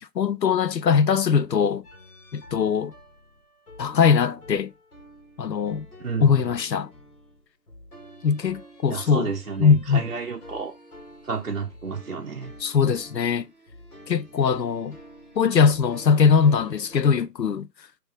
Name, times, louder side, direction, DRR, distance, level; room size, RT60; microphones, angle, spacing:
voice 1, 0.0-1.8 2.3-2.9 3.8-4.7 5.4-5.9 6.2-6.9 8.2-9.3 9.6-10.0 12.6-13.5 14.1-15.0 15.4-17.7, left 6 dB, 85° left, 0.6 m, -21 dB
sound 1, 1.8-17.0, equal, 60° left, 1.8 m, -48 dB
voice 2, 6.0-6.5 8.9-10.8 11.2-12.5, right 5 dB, 55° right, 0.7 m, -31 dB
5.1 x 3.0 x 3.3 m
figure-of-eight pair, 155°, 49 cm